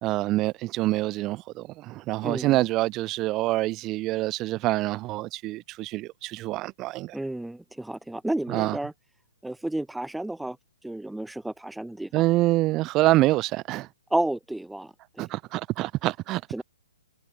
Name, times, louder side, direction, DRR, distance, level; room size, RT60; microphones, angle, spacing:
voice 1, 0.0-7.1 8.5-8.8 12.1-13.9 15.2-16.6, right 18 dB, 25° right, 1.6 m, -26 dB
voice 2, 2.2-2.6 7.1-8.9 9.4-10.6 10.8-12.2 14.1-15.3 16.5-16.6, right 1 dB, 5° right, 0.8 m, -31 dB
figure-of-eight pair, 120°, 0 cm